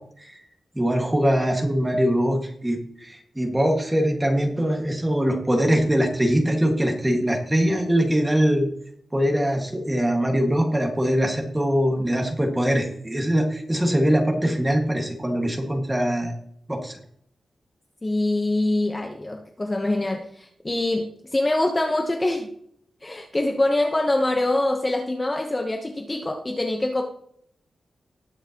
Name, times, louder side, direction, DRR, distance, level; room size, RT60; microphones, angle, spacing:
voice 1, 0.8-8.7 9.1-16.3 16.7-17.0, equal, 10° right, 2 dB, 1.7 m, -22 dB
voice 2, 18.0-22.5 23.0-27.0, left 2 dB, 20° left, 2 dB, 0.9 m, -24 dB
19.5 x 6.7 x 2.9 m, 0.68 s
wide cardioid pair, 155°, 0 cm